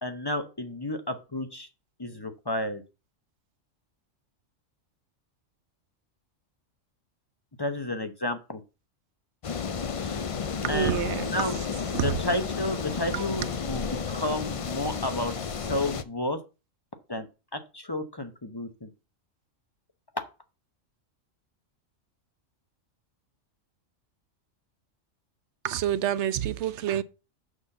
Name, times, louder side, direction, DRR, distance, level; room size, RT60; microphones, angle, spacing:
voice 1, 0.0-1.7 2.0-2.8 7.6-8.6 10.0-10.2 10.7-11.0 11.3-11.6 12.0-16.4 17.1-17.3 17.5-18.9, left 1 dB, 25° left, 0.7 m, -31 dB
sound 1, 9.4-16.0, left 6 dB, 60° left, 0.3 m, -32 dB
voice 2, 10.6-11.5 11.9-12.2 13.1-13.3 25.6-27.0, right 10 dB, 70° right, 0.8 m, -28 dB
6.4 x 5.6 x 6.5 m
omnidirectional pair, 1.4 m